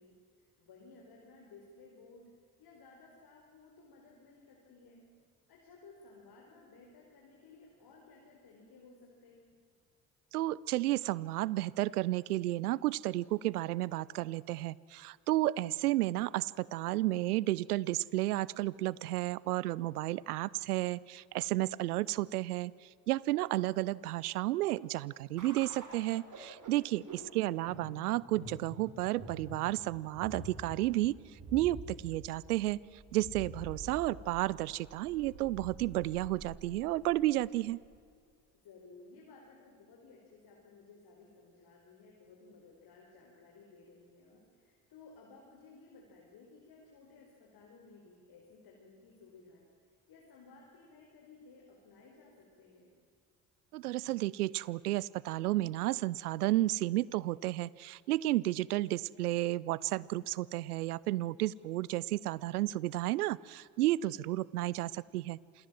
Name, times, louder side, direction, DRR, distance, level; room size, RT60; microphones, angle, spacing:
voice 1, 0.0-2.3 2.6-5.1 5.5-9.6 26.7-27.3 38.5-52.9, left 3 dB, 55° left, -1 dB, 4.8 m, -57 dB
voice 2, 10.3-31.2 31.5-32.8 33.1-37.8 53.7-65.4, right 16 dB, 85° right, 22 dB, 0.5 m, -32 dB
sound 1, 25.4-38.0, right 2 dB, 45° right, 6.6 m, -48 dB
27.5 x 18.5 x 7.5 m, 2.2 s
figure-of-eight pair, 50°, 44 cm